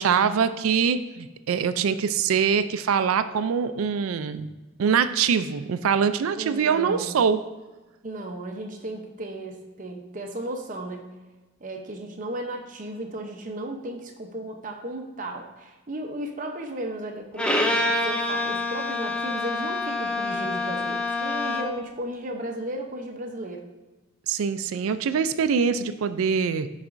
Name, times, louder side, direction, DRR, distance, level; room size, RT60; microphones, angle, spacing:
voice 1, 0.0-4.5 4.8-7.4 24.3-26.7, right 6 dB, 85° right, 12 dB, 0.4 m, -23 dB
voice 2, 6.3-7.1 8.0-11.1 11.6-23.6, right 1 dB, 40° right, 2 dB, 0.7 m, -35 dB
Bowed string instrument, 17.4-21.9, left 2 dB, 5° left, 0.4 m, -27 dB
10.5 x 4.1 x 2.5 m, 1.2 s
head